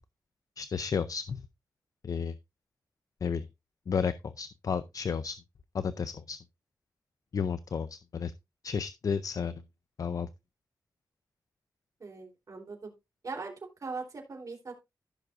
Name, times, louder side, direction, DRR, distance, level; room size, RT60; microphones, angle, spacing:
voice 1, 0.6-1.4 2.0-2.3 3.2-3.5 3.9-5.4 5.7-6.4 7.3-8.3 8.6-9.6 10.0-10.3, left 6 dB, 55° left, 0.5 m, -32 dB
voice 2, 12.0-12.9 13.2-13.5 13.8-14.7, right 4 dB, 55° right, 3.5 m, -40 dB
15.0 x 6.0 x 2.6 m
wide cardioid pair, 105°, 7 cm